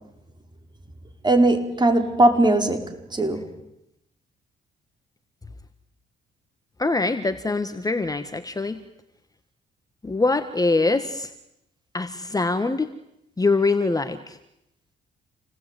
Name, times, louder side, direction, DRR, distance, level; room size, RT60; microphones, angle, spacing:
voice 1, 1.2-3.5, right 2 dB, 20° right, 5 dB, 5.0 m, -19 dB
voice 2, 6.8-8.8 10.0-11.3 11.9-12.9 13.4-14.4, left 3 dB, 20° left, 10 dB, 1.6 m, -23 dB
27.5 x 19.0 x 9.3 m, 0.85 s
cardioid pair, 90°, 20 cm